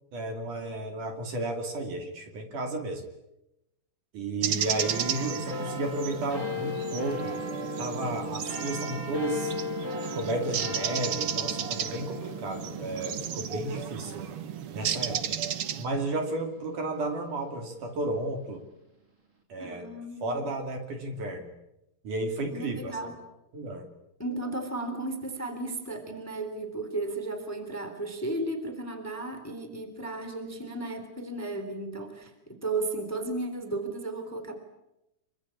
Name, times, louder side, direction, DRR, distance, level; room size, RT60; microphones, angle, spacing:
voice 1, 0.1-3.0 4.1-7.4 7.8-9.5 10.1-14.3 14.7-18.6 19.5-19.9 20.2-21.5 22.0-23.2 23.5-23.9, right 2 dB, 55° right, 4 dB, 4.1 m, -33 dB
sound 1, 4.4-15.8, right 9 dB, 85° right, 1.2 m, -34 dB
sound 2, 4.7-17.6 18.2-18.3, left 2 dB, 20° right, 3.3 m, -38 dB
voice 2, 19.6-20.4 22.5-23.1 24.2-32.3 32.6-34.5, right 2 dB, 5° left, 7 dB, 2.9 m, -34 dB
26.0 x 24.5 x 8.6 m, 0.91 s
omnidirectional pair, 4.5 m